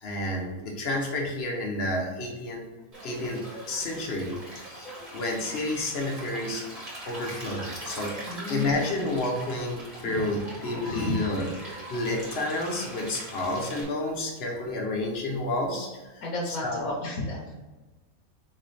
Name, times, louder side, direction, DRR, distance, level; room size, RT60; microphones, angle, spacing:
voice 1, 0.0-2.6 3.0-8.2 8.5-16.9, left 2 dB, 50° left, 1 dB, 1.0 m, -30 dB
Stream, 2.9-13.8, right 1 dB, 25° right, 1.4 m, -41 dB
voice 2, 8.3-8.7 10.9-11.2 16.2-17.5, left 2 dB, 75° left, -3 dB, 1.3 m, -32 dB
4.1 x 3.2 x 4.0 m, 1.2 s
omnidirectional pair, 1.5 m